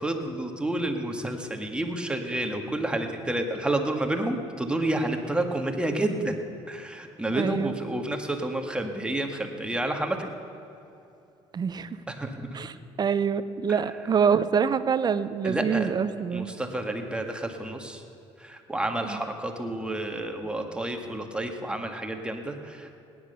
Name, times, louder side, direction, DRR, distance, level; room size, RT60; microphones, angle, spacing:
voice 1, 0.0-6.4 6.7-10.3 12.1-12.5 13.7-13.8 15.4-15.9 16.3-18.0 18.4-23.0, right 1 dB, 10° right, 4 dB, 1.8 m, -30 dB
voice 2, 7.3-7.8 11.5-11.9 12.5-16.5 19.0-19.2, right 6 dB, 35° right, 13 dB, 0.7 m, -26 dB
18.0 x 11.0 x 6.8 m, 2.8 s
cardioid pair, 95°, 12 cm